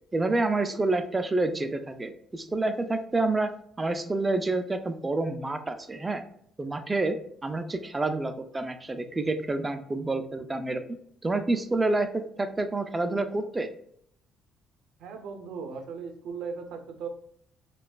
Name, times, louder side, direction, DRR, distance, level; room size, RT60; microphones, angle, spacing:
voice 1, 0.1-3.5 3.8-6.2 6.6-7.2 7.4-10.8 11.2-13.7, right 2 dB, 15° right, 9 dB, 0.3 m, -28 dB
voice 2, 15.0-17.1, right 5 dB, 75° right, 5 dB, 0.6 m, -37 dB
4.4 x 2.3 x 2.3 m, 0.67 s
cardioid pair, 150°, 0 cm